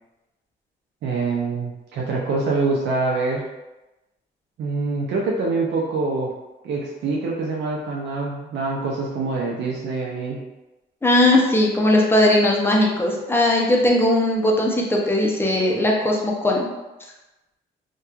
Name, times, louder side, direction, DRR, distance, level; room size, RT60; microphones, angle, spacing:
voice 1, 1.0-3.4 4.6-6.3 6.6-10.4, right 3 dB, 65° right, -2 dB, 0.5 m, -25 dB
voice 2, 11.0-16.7, left 1 dB, 10° left, -1 dB, 0.5 m, -19 dB
2.9 x 2.2 x 2.3 m, 1.0 s
cardioid pair, 90°, 20 cm